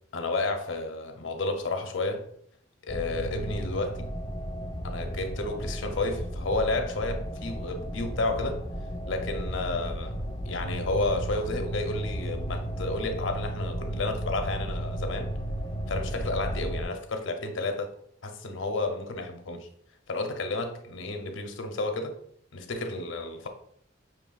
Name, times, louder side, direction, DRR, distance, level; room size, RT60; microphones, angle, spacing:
voice 1, 0.1-2.2 2.8-4.1 4.8-8.6 9.1-15.3 15.9-17.9 18.2-19.7 20.1-22.2 22.5-23.5, left 2 dB, 70° left, 0.6 m, -31 dB
sound 1, 2.9-16.8, equal, 20° left, 0.4 m, -34 dB
6.6 x 3.1 x 2.3 m
head